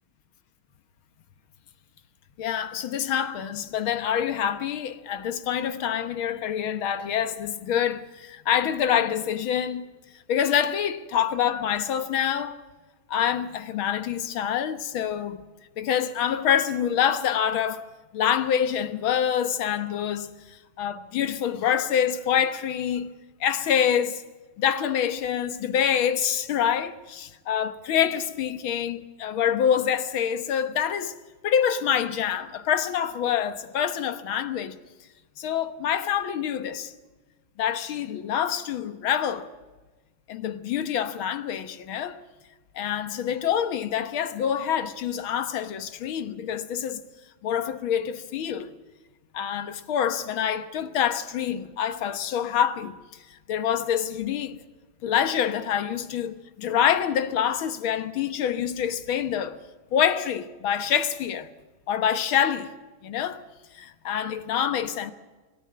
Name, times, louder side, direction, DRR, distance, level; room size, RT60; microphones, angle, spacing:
voice 1, 2.4-9.9 10.3-12.6 13.1-15.4 15.8-17.9 18.1-23.1 23.4-24.2 24.6-31.2 31.4-34.8 35.4-36.9 37.6-39.5 40.3-42.2 42.8-47.0 47.4-48.7 49.3-53.0 53.5-54.6 55.0-59.6 59.9-61.5 61.9-62.8 63.0-63.4 63.7-65.1, left 9 dB, 90° left, 2.0 m, -26 dB
24.5 x 13.5 x 8.6 m
omnidirectional pair, 2.2 m